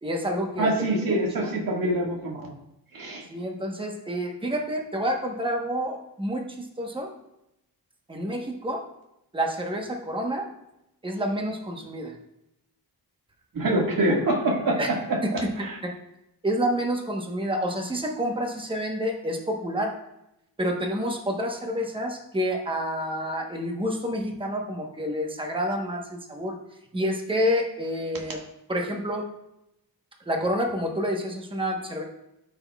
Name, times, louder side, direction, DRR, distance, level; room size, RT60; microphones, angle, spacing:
voice 1, 0.0-0.7 3.3-7.1 8.1-8.9 9.3-10.5 11.0-12.1 14.8-14.9 15.2-15.5 15.8-15.9 16.4-19.9 20.6-26.5 26.9-28.4 28.7-29.3 30.3-32.0, equal, 15° right, 1 dB, 1.1 m, -28 dB
voice 2, 0.6-2.5 2.9-3.2 13.5-15.0 15.6-15.8, right 1 dB, 60° right, -1 dB, 1.8 m, -25 dB
12.5 x 6.0 x 2.3 m, 0.83 s
wide cardioid pair, 125°, 39 cm